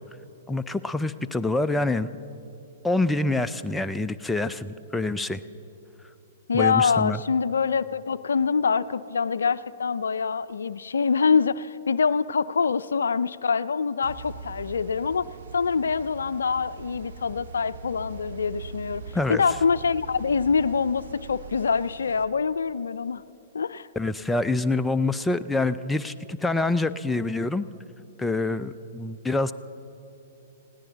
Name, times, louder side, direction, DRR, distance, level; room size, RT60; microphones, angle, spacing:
voice 1, 0.5-2.1 2.8-5.4 6.5-7.2 19.1-19.4 24.0-27.6 28.2-29.5, left 2 dB, 5° left, 10 dB, 0.4 m, -26 dB
voice 2, 6.5-15.3 15.5-19.0 19.3-23.2 23.5-23.9, left 5 dB, 80° left, 15 dB, 0.4 m, -25 dB
sound 1, 14.0-22.2, right 5 dB, 65° right, 0.9 m, -42 dB
20.0 x 17.0 x 4.0 m, 3.0 s
hypercardioid pair, 120°, 0 cm